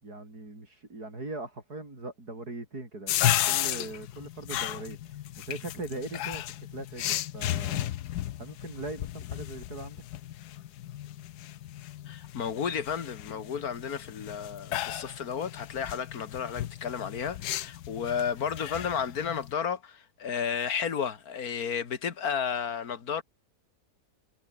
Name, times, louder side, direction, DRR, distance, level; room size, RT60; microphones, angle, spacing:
voice 1, 0.0-5.0 5.5-6.4 6.7-7.9 8.4-10.0, right 2 dB, 80° right, 6.9 m, -40 dB
sound 1, 3.1-19.5, left 13 dB, 85° left, 1.3 m, -34 dB
voice 2, 12.1-23.2, left 7 dB, 70° left, 2.2 m, -32 dB
omnidirectional pair, 1.7 m